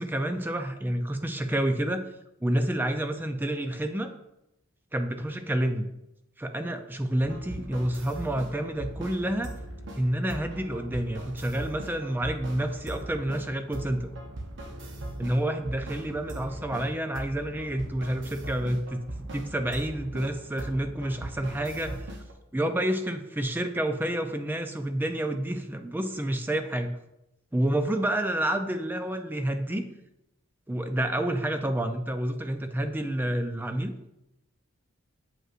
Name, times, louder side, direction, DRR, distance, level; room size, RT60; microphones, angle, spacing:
voice 1, 0.0-2.0 2.4-4.1 4.9-5.9 6.4-9.5 10.0-14.1 15.2-22.2 22.5-27.0 27.5-29.8 30.7-33.9, right 1 dB, 10° right, 6 dB, 0.3 m, -29 dB
sound 1, 7.2-22.3, right 1 dB, 55° right, 0.8 m, -40 dB
7.4 x 5.4 x 2.5 m, 0.87 s
head